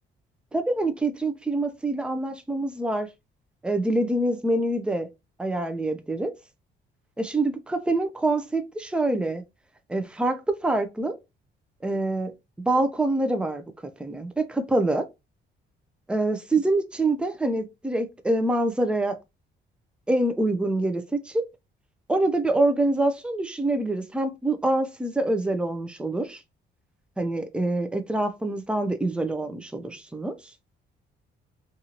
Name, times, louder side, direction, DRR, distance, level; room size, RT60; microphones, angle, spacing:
voice 1, 0.5-3.1 3.6-5.1 5.4-6.3 7.2-9.4 9.9-11.2 11.8-12.3 12.7-13.6 14.0-15.0 16.1-19.2 20.1-21.4 22.1-26.4 27.2-30.4, right 2 dB, 5° right, 0.5 m, -25 dB
2.7 x 2.5 x 2.8 m
cardioid pair, 90°, 20 cm